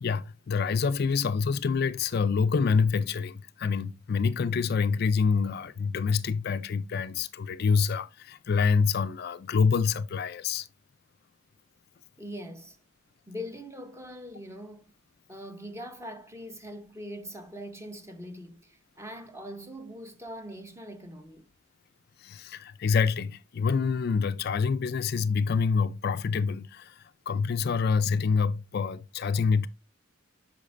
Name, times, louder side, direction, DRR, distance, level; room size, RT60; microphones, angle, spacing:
voice 1, 0.0-10.7 22.2-29.7, left 5 dB, 50° left, 0.4 m, -26 dB
voice 2, 12.2-12.8 13.3-14.9 15.3-21.5, equal, 15° right, 1.0 m, -42 dB
8.2 x 6.4 x 2.5 m
head